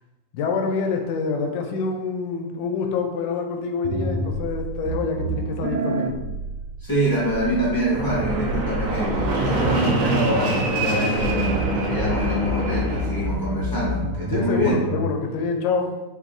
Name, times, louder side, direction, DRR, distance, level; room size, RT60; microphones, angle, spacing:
voice 1, 0.3-6.2 14.3-15.9, left 5 dB, 80° left, 4 dB, 1.2 m, -26 dB
sound 1, 3.8-15.1, right 1 dB, 85° right, 1.3 m, -29 dB
voice 2, 6.8-14.8, equal, 30° left, -7 dB, 0.4 m, -25 dB
Fixed-wing aircraft airplane, 7.9-13.5, right 2 dB, 65° right, 0.8 m, -25 dB
4.2 x 2.3 x 3.9 m, 1.0 s
omnidirectional pair, 2.1 m